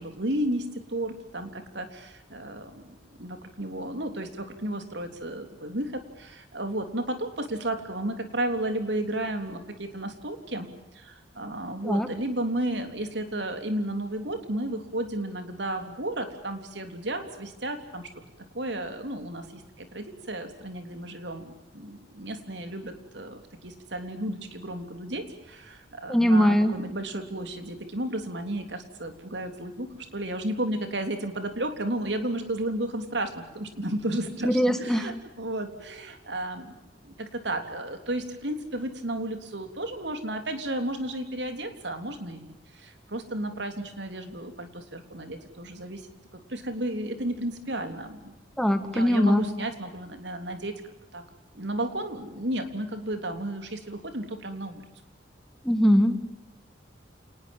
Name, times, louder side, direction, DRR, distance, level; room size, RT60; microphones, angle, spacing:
voice 1, 0.0-10.7 10.9-18.1 18.5-36.8 37.0-46.1 46.3-48.3 48.8-50.7 51.1-51.2 51.5-54.8, right 1 dB, 70° right, 7 dB, 3.5 m, -33 dB
voice 2, 26.1-26.7 34.4-35.1 48.6-49.4 55.6-56.3, equal, 5° left, 8 dB, 1.9 m, -21 dB
29.0 x 20.0 x 7.3 m, 0.96 s
head